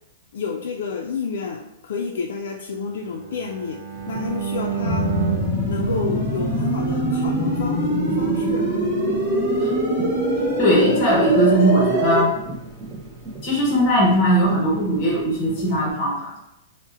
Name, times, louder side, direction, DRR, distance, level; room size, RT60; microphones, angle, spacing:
voice 1, 0.3-3.8 4.1-5.1 5.7-8.7, left 5 dB, 70° left, 1 dB, 0.3 m, -30 dB
Bowed string instrument, 2.8-6.9, right 8 dB, 60° right, 0.4 m, -31 dB
sound 1, 3.9-15.9, right 2 dB, 10° right, 0.5 m, -39 dB
sound 2, 4.8-12.2, right 1 dB, 30° right, 1.1 m, -22 dB
voice 2, 10.6-12.3 13.4-16.4, right 1 dB, 25° left, -3 dB, 0.7 m, -19 dB
2.6 x 2.0 x 3.6 m, 0.85 s
supercardioid pair, 165°, 0 cm